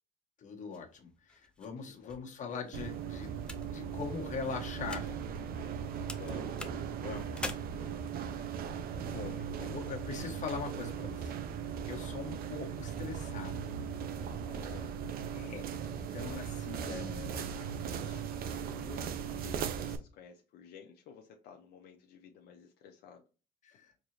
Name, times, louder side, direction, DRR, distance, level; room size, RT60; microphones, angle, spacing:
voice 1, 0.4-5.2 7.0-7.5 8.9-9.3 9.6-11.4 11.8-13.8 15.3-17.2 23.6-23.9, left 5 dB, 45° left, 2 dB, 1.2 m, -42 dB
sound 1, 0.7-5.8 6.1-7.5, left 1 dB, 5° left, 0.5 m, -46 dB
voice 2, 1.8-2.1 3.2-3.5 5.9-7.1 9.1-9.9 12.0-12.4 14.4-14.9 16.3-23.3, left 7 dB, 75° left, 2 dB, 0.6 m, -53 dB
sound 2, 2.7-20.0, right 7 dB, 60° right, 0.6 m, -38 dB
4.7 x 2.9 x 2.6 m, 0.33 s
cardioid pair, 110°, 17 cm